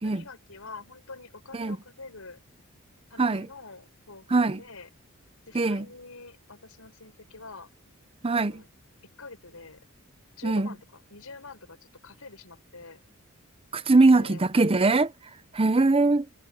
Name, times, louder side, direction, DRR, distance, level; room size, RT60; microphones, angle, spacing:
voice 1, 0.0-2.4 3.1-4.9 5.5-7.7 8.3-8.7 9.2-9.8 10.4-13.0 14.0-14.4, left 3 dB, 75° left, 5.5 m, -46 dB
voice 2, 4.3-4.6 5.5-5.9 8.2-8.6 10.4-10.7 13.7-15.1 15.5-16.3, right 3 dB, 25° right, 0.6 m, -21 dB
head